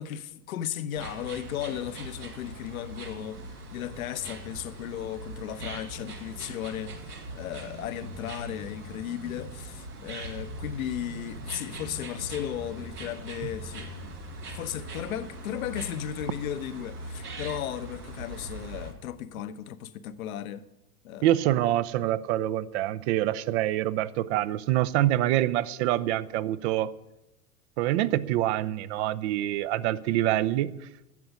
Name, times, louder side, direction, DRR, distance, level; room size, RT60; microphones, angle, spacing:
voice 1, 0.0-14.2 14.5-20.7 21.0-21.4, left 11 dB, 65° left, 1.0 m, -35 dB
sound 1, 0.9-18.9, right 2 dB, 85° right, 2.5 m, -41 dB
voice 2, 21.2-26.9 27.8-30.7, right 14 dB, 45° right, 0.7 m, -26 dB
12.0 x 7.9 x 9.5 m
figure-of-eight pair, 85°, 45 cm